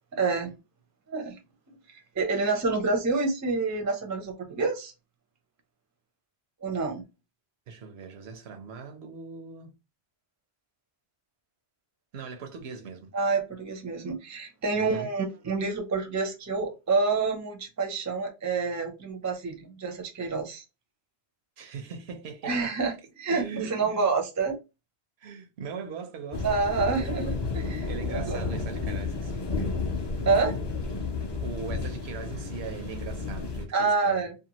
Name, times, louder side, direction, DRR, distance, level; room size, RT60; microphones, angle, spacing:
voice 1, 0.1-0.6 1.1-1.4 1.9-4.9 6.6-7.0 13.1-20.6 22.4-24.6 26.4-28.4 30.3-30.5 33.7-34.3, right 4 dB, 25° right, 0.4 m, -28 dB
voice 2, 7.7-9.7 12.1-13.1 14.8-15.1 21.6-22.7 23.3-24.1 25.2-26.4 27.9-29.5 31.4-34.2, right 5 dB, 75° right, 0.9 m, -40 dB
sound 1, 26.3-33.6, left 4 dB, 40° left, 0.4 m, -32 dB
2.7 x 2.2 x 2.8 m
omnidirectional pair, 1.1 m